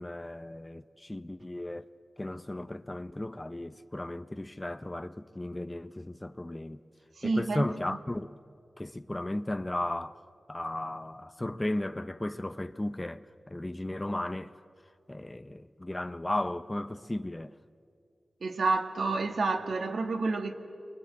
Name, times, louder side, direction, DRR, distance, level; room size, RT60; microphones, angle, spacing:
voice 1, 0.0-1.9 2.2-6.8 7.2-8.3 8.8-10.2 10.5-13.2 13.5-14.5 15.1-17.5, left 1 dB, 15° left, 0.6 m, -35 dB
voice 2, 7.2-8.0 18.4-20.5, right 3 dB, 70° right, 1.8 m, -29 dB
28.5 x 23.0 x 8.5 m
wide cardioid pair, 110°, 0 cm